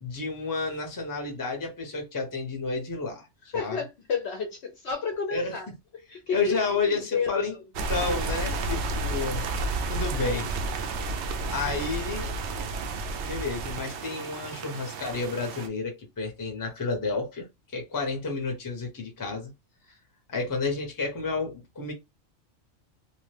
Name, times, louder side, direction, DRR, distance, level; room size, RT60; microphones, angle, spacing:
voice 1, 0.0-3.3 3.5-3.8 5.3-5.5 6.3-7.5 7.9-9.4 9.9-10.5 11.5-12.3 13.2-17.5 17.7-19.5 20.3-21.9, left 4 dB, 20° left, 0.6 m, -31 dB
voice 2, 3.5-7.6 7.9-8.2 9.4-9.7, left 5 dB, 65° left, 0.7 m, -32 dB
sound 1, 7.7-15.7, right 3 dB, 65° right, 0.7 m, -31 dB
2.9 x 2.1 x 3.2 m
omnidirectional pair, 1.4 m